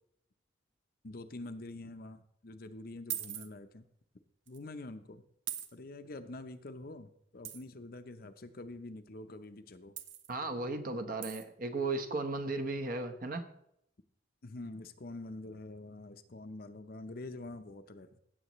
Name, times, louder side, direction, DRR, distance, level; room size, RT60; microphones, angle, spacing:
voice 1, 1.0-3.8 4.5-5.2 5.7-9.9 14.4-18.2, left 2 dB, 45° left, 9 dB, 0.7 m, -46 dB
sound 1, 3.1-3.5 4.5-4.6 5.5-5.7 7.4-7.6 10.0-10.3 11.2-11.4, right 11 dB, 65° right, 0.9 m, -40 dB
voice 2, 10.3-13.4, right 2 dB, 45° right, 7 dB, 1.0 m, -35 dB
16.5 x 7.5 x 3.1 m, 0.74 s
head